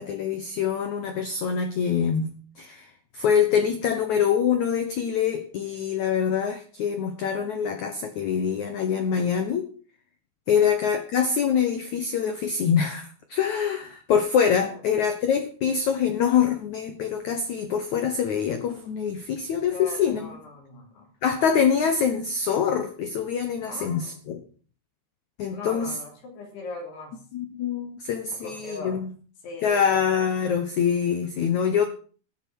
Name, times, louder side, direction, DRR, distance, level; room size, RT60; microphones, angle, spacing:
voice 1, 0.0-9.7 10.5-20.3 21.2-24.4 25.4-26.0 27.3-29.1 29.6-31.8, left 7 dB, 85° left, 7 dB, 1.6 m, -25 dB
voice 2, 19.7-21.1 23.6-24.2 25.5-27.2 28.4-29.0 29.4-30.0, left 2 dB, 65° left, 1 dB, 5.4 m, -40 dB
13.5 x 9.7 x 6.3 m, 0.42 s
omnidirectional pair, 5.3 m